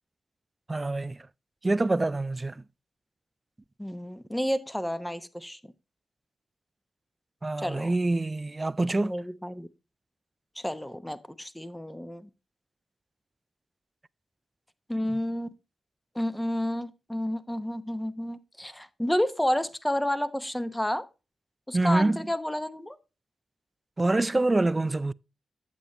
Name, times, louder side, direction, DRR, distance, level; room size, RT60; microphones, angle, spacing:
voice 1, 0.7-1.2 1.6-2.6 7.4-9.1 21.7-22.2 24.0-25.1, right 2 dB, 30° right, 0.3 m, -25 dB
voice 2, 3.8-5.6 7.6-7.9 9.0-9.7 10.6-12.3 14.9-15.5 16.1-21.1 21.7-23.0, left 1 dB, 10° left, 0.9 m, -30 dB
8.9 x 7.4 x 3.0 m
supercardioid pair, 45°, 0 cm